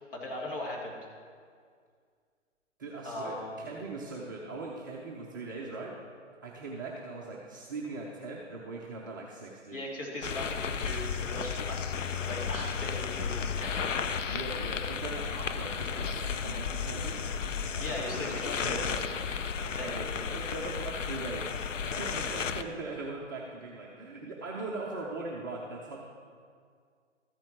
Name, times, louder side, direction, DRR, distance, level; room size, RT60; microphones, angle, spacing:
voice 1, 0.1-1.0 3.0-3.7 9.7-13.8 17.8-18.9 19.6-20.3, left 1 dB, 50° left, -4 dB, 2.7 m, -39 dB
voice 2, 2.8-5.9 6.4-9.8 14.3-17.2 17.5-26.0, right 3 dB, 15° right, -4 dB, 0.5 m, -40 dB
sound 1, 10.2-22.6, left 6 dB, 80° left, 0.6 m, -33 dB
13.5 x 8.7 x 3.0 m, 2.1 s
figure-of-eight pair, 130°, 37 cm